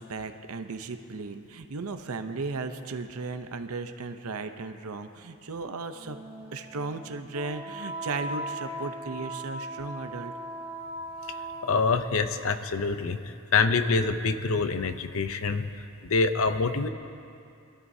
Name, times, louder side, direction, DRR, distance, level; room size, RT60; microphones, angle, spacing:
voice 1, 0.0-6.2 6.5-10.3, right 3 dB, 80° right, 8 dB, 0.7 m, -36 dB
Wind instrument woodwind instrument, 5.9-12.2, right 1 dB, 10° right, 1.5 m, -38 dB
voice 2, 11.6-13.2 13.5-15.7 16.0-16.9, left 4 dB, 70° left, 10 dB, 0.6 m, -25 dB
23.5 x 12.5 x 2.7 m, 2.6 s
head